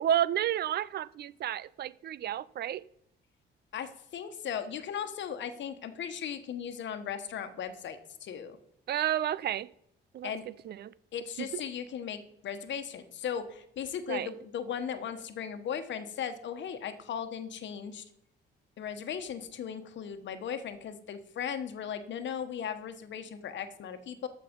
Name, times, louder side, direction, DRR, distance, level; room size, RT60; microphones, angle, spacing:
voice 1, 0.0-2.8 8.9-9.7 10.1-10.3 10.7-10.9 11.4-11.5 14.1-14.3, right 11 dB, 55° right, 0.4 m, -31 dB
voice 2, 3.7-8.6 10.2-10.4 11.1-18.0 18.8-24.3, left 8 dB, 65° left, 1.2 m, -37 dB
13.5 x 5.9 x 5.2 m
cardioid pair, 90°, 20 cm